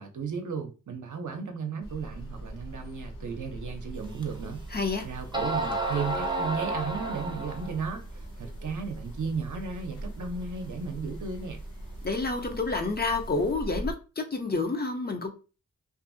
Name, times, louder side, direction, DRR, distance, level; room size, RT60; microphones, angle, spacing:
voice 1, 0.0-4.6 5.0-11.6, right 5 dB, 65° right, 0.7 m, -35 dB
sound 1, 1.8-13.9, right 1 dB, 90° left, 0.6 m, -41 dB
sound 2, 4.2-4.3 5.0-5.1 5.3-7.8, right 2 dB, 15° right, 0.6 m, -31 dB
voice 2, 4.7-5.1 12.0-15.3, left 3 dB, 30° left, 0.6 m, -29 dB
2.6 x 2.5 x 2.5 m
cardioid pair, 60°, 32 cm